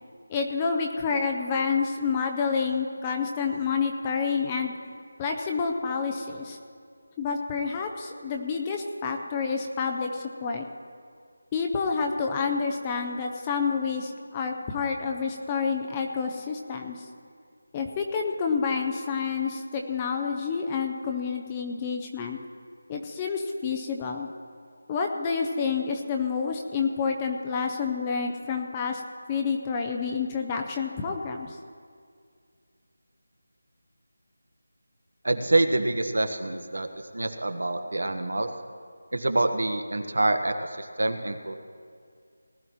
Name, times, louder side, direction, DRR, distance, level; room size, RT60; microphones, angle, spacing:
voice 1, 0.3-4.7 5.2-6.6 7.2-10.7 11.5-17.1 17.7-22.4 22.9-24.3 24.9-29.0 29.3-31.6, left 5 dB, 10° left, 3 dB, 0.4 m, -28 dB
voice 2, 35.2-36.9 37.1-38.5 39.1-41.5, right 2 dB, 85° right, 7 dB, 1.2 m, -26 dB
19.0 x 12.0 x 3.0 m, 2.2 s
figure-of-eight pair, 180°, 0 cm